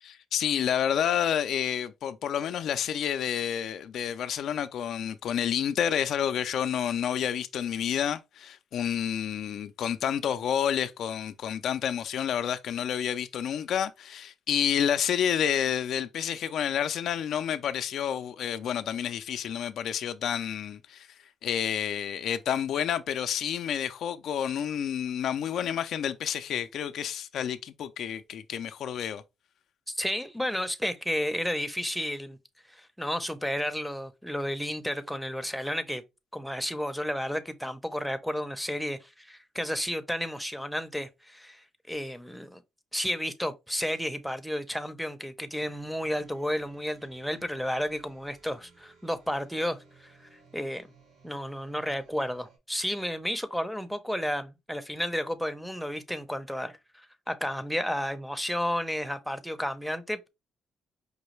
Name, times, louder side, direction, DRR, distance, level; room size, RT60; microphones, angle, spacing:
voice 1, 0.0-21.1 21.4-29.2, left 9 dB, 70° left, 0.4 m, -29 dB
voice 2, 29.9-32.4 32.7-36.0 36.3-42.6 42.9-50.9 51.2-60.3, equal, ahead, 0.6 m, -32 dB
sound 1, 45.6-52.6, right 5 dB, 75° right, 1.7 m, -59 dB
5.0 x 2.3 x 3.1 m
cardioid pair, 90°, 0 cm